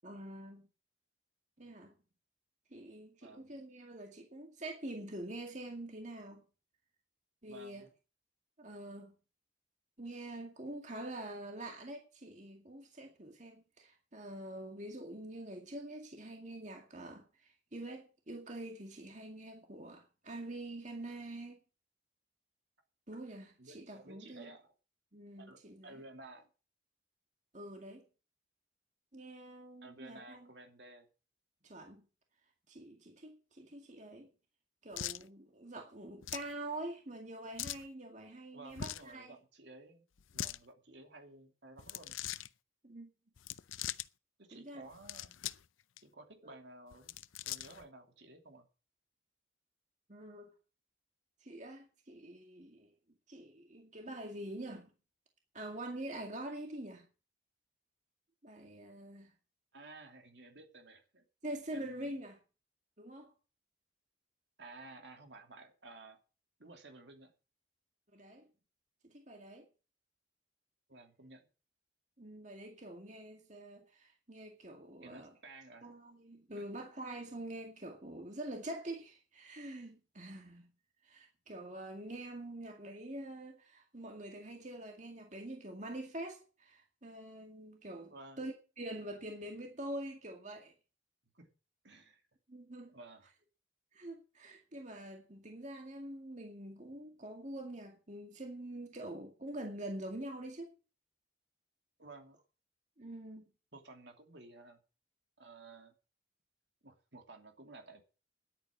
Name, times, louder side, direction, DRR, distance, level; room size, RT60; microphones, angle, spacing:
voice 1, 0.0-0.7 1.6-1.9 2.7-6.4 7.4-7.8 8.6-9.1 10.0-21.6 23.1-24.5 25.1-25.9 27.5-28.0 29.1-30.5 31.6-32.0 32.7-34.3 34.8-39.4 42.8-43.1 44.5-44.8 46.4-46.5 50.1-50.5 51.4-52.9 53.3-54.9 55.5-57.0 58.4-59.3 61.4-62.4 63.0-63.3 68.1-68.5 69.0-69.7 72.2-75.3 75.8-80.7 81.0-90.7 92.5-92.9 93.9-100.7 103.0-103.5, right 1 dB, 40° right, 2.1 m, -45 dB
voice 2, 3.2-3.6 7.5-7.9 23.6-24.7 25.4-26.5 29.8-31.1 38.5-40.0 40.3-42.2 44.4-45.3 46.0-47.1 47.4-48.7 59.7-61.2 61.7-62.1 64.6-66.2 66.6-67.3 70.9-71.5 75.0-75.9 76.5-76.6 88.1-88.4 91.3-91.5 91.8-92.2 92.9-93.3 102.0-102.4 103.7-104.8 105.4-105.9 106.8-108.0, right 2 dB, 60° right, 2.8 m, -54 dB
sound 1, 34.9-35.2 36.2-36.5 37.6-37.9 38.7-39.1 40.2-40.6 41.8-42.5 43.4-44.1 44.9-45.7 46.0-46.1 46.9-47.8, left 12 dB, 90° left, 0.6 m, -41 dB
10.5 x 8.9 x 7.3 m
head